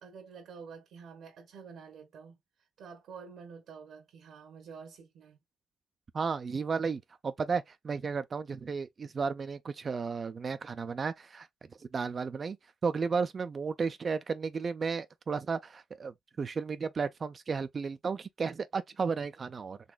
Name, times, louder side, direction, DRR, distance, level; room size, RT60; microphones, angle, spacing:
voice 1, 0.0-5.4, right 5 dB, 75° right, 1.0 m, -49 dB
voice 2, 6.1-11.5 11.8-12.6 12.8-19.8, right 5 dB, 40° right, 0.4 m, -33 dB
3.9 x 2.9 x 2.2 m
cardioid pair, 90°, 0 cm